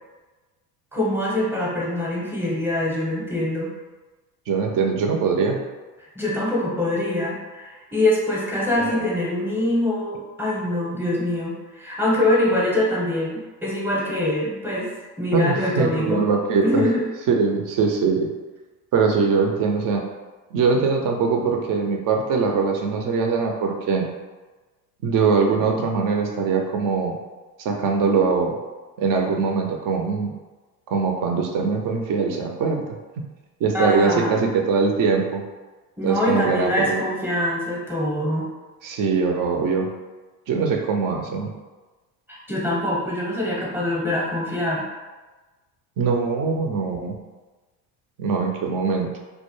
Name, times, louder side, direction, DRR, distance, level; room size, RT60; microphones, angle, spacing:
voice 1, 0.9-3.7 6.2-14.9 15.2-16.2 16.6-17.0 33.7-34.5 36.0-38.5 42.3-44.9, left 1 dB, 5° right, -5 dB, 0.7 m, -24 dB
voice 2, 4.5-5.6 8.9-9.0 15.3-16.8 17.3-18.3 18.9-20.1 20.5-24.1 25.0-27.2 27.6-28.6 29.0-30.3 30.9-32.8 33.6-35.4 36.0-37.0 38.8-39.9 40.5-41.5 46.0-47.2 48.2-49.1, right 5 dB, 45° right, 2 dB, 0.5 m, -22 dB
2.1 x 2.0 x 3.0 m, 1.2 s
hypercardioid pair, 75°, 49 cm